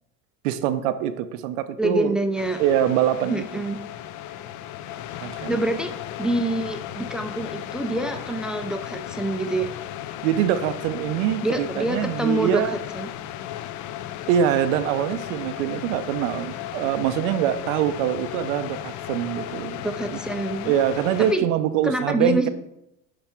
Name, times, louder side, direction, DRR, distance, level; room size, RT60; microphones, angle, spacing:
voice 1, 0.4-2.1 2.6-3.4 5.2-5.5 10.2-12.8 14.3-20.2 20.6-22.5, right 10 dB, 90° right, 11 dB, 0.7 m, -24 dB
voice 2, 1.8-2.6 3.3-3.8 5.5-5.9 6.2-9.7 11.4-12.6 12.9-13.1 19.8-20.7 21.2-21.5 21.8-22.5, right 1 dB, ahead, 7 dB, 0.3 m, -26 dB
sound 1, 2.4-21.3, left 12 dB, 50° left, 0.5 m, -35 dB
10.0 x 3.4 x 4.4 m, 0.86 s
supercardioid pair, 125°, 38 cm